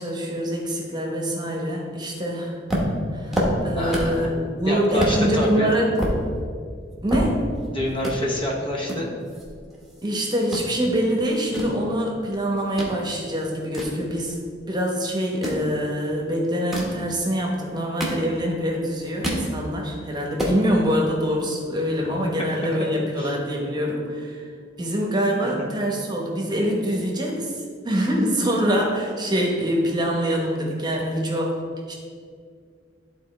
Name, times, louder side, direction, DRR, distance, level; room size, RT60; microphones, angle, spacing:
voice 1, 0.0-2.6 3.1-5.9 7.0-7.5 10.0-14.4 14.7-24.5 24.8-31.6 31.9-32.0, equal, 25° right, -1 dB, 1.1 m, -24 dB
sound 1, 2.7-4.2 4.6-4.7 5.0-5.2 5.7-7.7 8.0-8.2 8.9-10.1 10.3-10.7 11.2-12.9 13.3-14.6 15.3-15.7 16.5-17.0 17.6-18.6 18.9-19.5 19.9-20.0 20.2-20.6, equal, ahead, 1.2 m, -27 dB
voice 2, 3.7-4.3 4.7-5.7 7.7-9.1 23.2-23.4 25.6-25.7, equal, 25° left, -1 dB, 0.9 m, -27 dB
11.5 x 3.9 x 3.3 m, 2.1 s
head